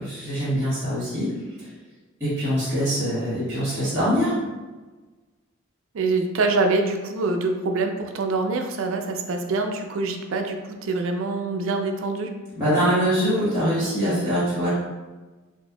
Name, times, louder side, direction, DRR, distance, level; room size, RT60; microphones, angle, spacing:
voice 1, 0.0-1.3 2.2-4.3 12.5-14.7, equal, 10° right, -16 dB, 1.3 m, -23 dB
voice 2, 5.9-12.3, right 3 dB, 65° right, 5 dB, 0.4 m, -25 dB
4.3 x 2.5 x 2.3 m, 1.2 s
head